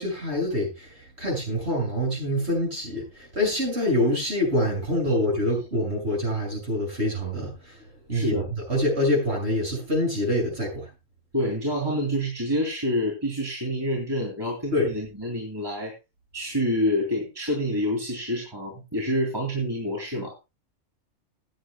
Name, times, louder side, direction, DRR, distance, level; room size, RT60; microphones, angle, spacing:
voice 1, 0.0-7.8 8.1-10.9 14.7-14.9, left 1 dB, 45° right, 7.3 m, -26 dB
voice 2, 8.1-8.4 11.3-15.9 16.3-20.3, equal, 15° right, 3.0 m, -27 dB
20.0 x 8.9 x 2.3 m
omnidirectional pair, 1.5 m